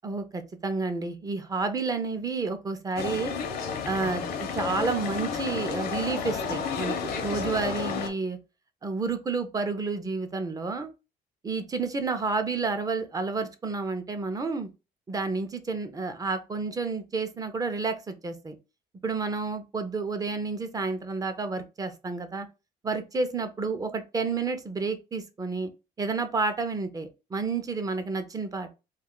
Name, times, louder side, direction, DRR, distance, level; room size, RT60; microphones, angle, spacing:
voice 1, 0.0-3.3 3.8-8.4 8.8-10.9 11.4-14.7 15.1-18.6 19.0-22.5 22.8-25.7 26.0-28.7, right 4 dB, 20° right, 0.5 m, -30 dB
sound 1, 3.0-8.1, left 6 dB, 65° left, 0.7 m, -31 dB
2.5 x 2.3 x 3.6 m
cardioid pair, 110°, 17 cm